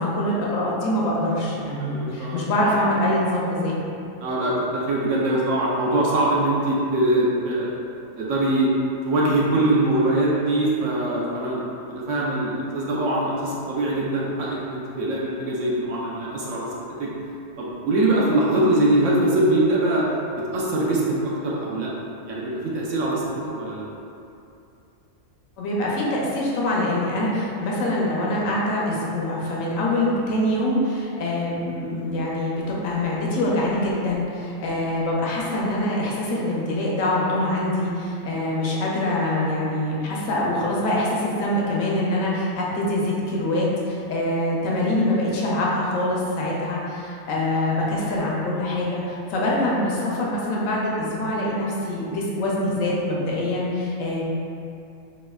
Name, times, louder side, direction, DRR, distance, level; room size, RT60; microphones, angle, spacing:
voice 1, 0.0-3.7 25.6-54.2, left 1 dB, 75° left, -4 dB, 0.9 m, -24 dB
voice 2, 1.8-2.7 4.2-7.7 8.2-8.7 9.0-16.7 17.0-17.1 17.6-20.0 20.5-21.9 22.3-23.2 23.6-23.8, right 1 dB, 70° right, -5 dB, 0.9 m, -22 dB
4.1 x 2.4 x 2.2 m, 2.6 s
omnidirectional pair, 1.5 m